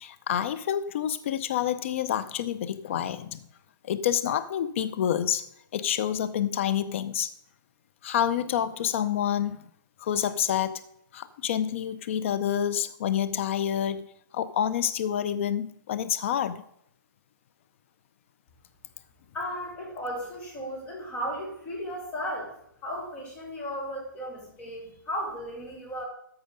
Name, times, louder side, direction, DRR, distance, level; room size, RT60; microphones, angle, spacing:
voice 1, 0.0-3.4 3.9-5.4 5.7-7.3 8.0-9.6 10.0-10.8 11.1-14.1 14.3-16.6, left 10 dB, 35° left, 13 dB, 0.6 m, -28 dB
voice 2, 19.3-26.0, equal, 10° left, -2 dB, 2.2 m, -35 dB
13.5 x 5.1 x 5.1 m, 0.72 s
hypercardioid pair, 155°, 12 cm